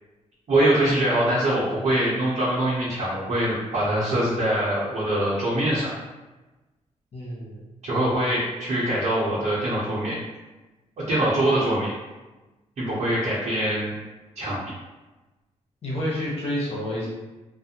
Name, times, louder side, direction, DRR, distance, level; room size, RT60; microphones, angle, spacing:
voice 1, 0.5-5.9 7.8-10.2 11.0-11.9 12.8-13.9 14.4-14.6, right 1 dB, 60° right, -9 dB, 0.8 m, -23 dB
voice 2, 7.1-7.7 15.8-17.1, left 1 dB, 55° left, -5 dB, 0.9 m, -29 dB
2.4 x 2.1 x 2.8 m, 1.1 s
cardioid pair, 90°, 12 cm